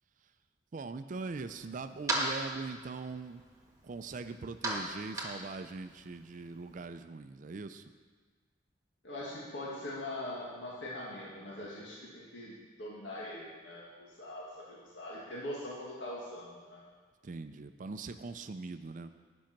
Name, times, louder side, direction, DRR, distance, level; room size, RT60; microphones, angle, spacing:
voice 1, 0.7-3.4 3.8-7.8 17.2-19.1, right 4 dB, 45° right, 10 dB, 0.4 m, -41 dB
sound 1, 1.1-6.9, right 1 dB, 20° right, 1.6 m, -39 dB
voice 2, 9.0-16.8, left 1 dB, 80° left, -6 dB, 1.8 m, -42 dB
10.5 x 6.3 x 5.9 m, 1.5 s
head